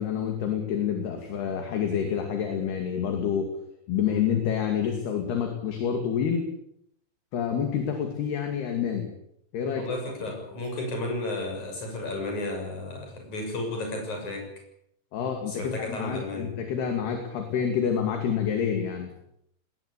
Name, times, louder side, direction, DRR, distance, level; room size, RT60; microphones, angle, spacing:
voice 1, 0.0-3.6 3.9-6.5 7.3-9.1 9.5-9.9 15.1-19.1, left 8 dB, 65° left, 5 dB, 4.4 m, -28 dB
voice 2, 9.7-14.5 15.5-16.5, left 2 dB, 40° left, 2 dB, 8.1 m, -33 dB
20.0 x 19.5 x 8.6 m, 0.74 s
omnidirectional pair, 5.3 m